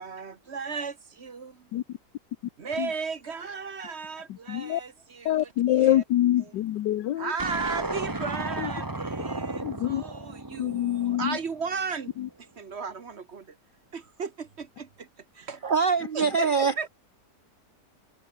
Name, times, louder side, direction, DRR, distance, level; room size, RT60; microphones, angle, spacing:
voice 1, 0.0-1.7 2.6-6.0 6.4-6.5 7.2-12.1 12.6-13.6 13.9-15.1 15.3-15.6 16.1-16.9, right 5 dB, 45° right, 1.3 m, -35 dB
voice 2, 4.3-4.8 5.2-7.3 8.6-8.7 9.6-10.0 10.6-11.4 12.2-12.3, left 13 dB, 85° left, 1.4 m, -25 dB
sound 1, 7.4-11.8, right 2 dB, 15° right, 1.2 m, -34 dB
voice 3, 15.6-16.9, right 5 dB, 70° right, 0.4 m, -24 dB
omnidirectional pair, 1.8 m